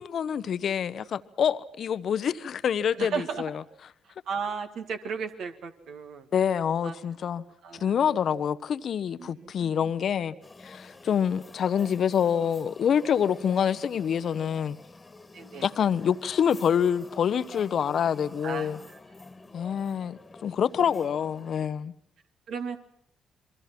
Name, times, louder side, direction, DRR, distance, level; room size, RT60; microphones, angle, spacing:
voice 1, 0.0-3.5 6.3-7.4 7.8-10.3 10.6-14.8 15.6-18.8 19.5-21.9, left 8 dB, 55° left, 0.9 m, -26 dB
voice 2, 3.0-3.5 4.3-6.3 6.8-6.9 7.6-8.0 9.2-9.7 15.3-15.7 18.4-19.0 22.5-22.8, right 5 dB, 65° right, 2.0 m, -35 dB
sound 1, 10.4-21.7, left 3 dB, 25° left, 1.8 m, -49 dB
27.5 x 22.5 x 6.0 m
hypercardioid pair, 45°, 0 cm